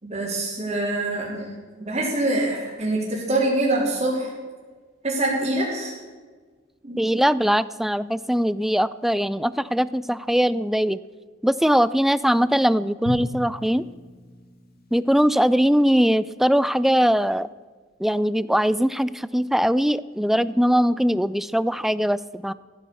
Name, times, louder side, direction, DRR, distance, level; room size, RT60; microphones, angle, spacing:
voice 1, 0.0-1.5 1.8-4.3 5.0-6.0 6.8-7.0, right 2 dB, 35° right, -9 dB, 3.5 m, -25 dB
voice 2, 7.0-11.0 11.4-13.9 14.9-17.5 18.0-22.5, equal, ahead, 17 dB, 0.3 m, -21 dB
Drum, 13.1-16.0, equal, 50° left, 2.1 m, -37 dB
15.0 x 9.3 x 7.0 m, 1.4 s
head